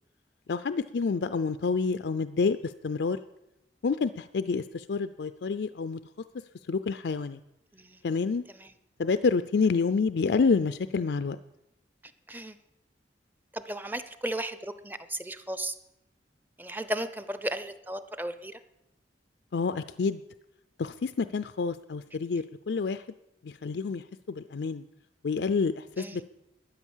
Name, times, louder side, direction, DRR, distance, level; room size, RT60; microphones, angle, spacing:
voice 1, 0.5-3.2 3.8-6.0 6.7-7.4 8.0-8.4 9.0-11.4 19.5-20.2 20.8-23.0 23.4-24.8 25.2-26.3, left 4 dB, 70° left, 12 dB, 0.4 m, -28 dB
voice 2, 13.5-15.7 16.6-18.6 26.0-26.2, right 1 dB, 10° right, 13 dB, 0.7 m, -35 dB
13.0 x 9.2 x 7.3 m, 0.87 s
head